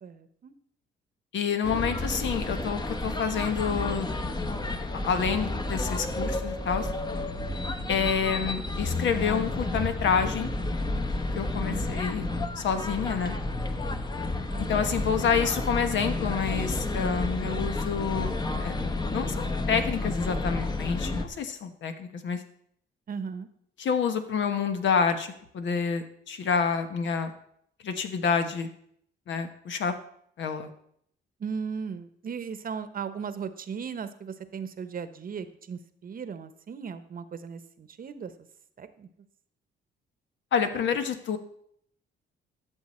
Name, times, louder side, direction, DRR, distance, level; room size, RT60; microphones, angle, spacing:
voice 1, 0.0-0.5 11.7-12.1 14.5-14.9 23.1-23.5 31.4-38.3 38.8-39.1, right 6 dB, 45° right, 12 dB, 0.9 m, -37 dB
voice 2, 1.3-4.1 4.9-6.9 7.9-10.5 11.3-12.2 12.6-13.3 14.7-18.3 18.6-18.8 19.1-22.4 23.8-27.3 27.8-28.7 29.3-30.0 30.4-30.7 40.5-41.4, left 6 dB, 70° left, 8 dB, 1.2 m, -28 dB
sound 1, 1.6-21.3, left 2 dB, 20° left, 1.0 m, -31 dB
13.0 x 6.8 x 4.3 m, 0.68 s
cardioid pair, 90°, 20 cm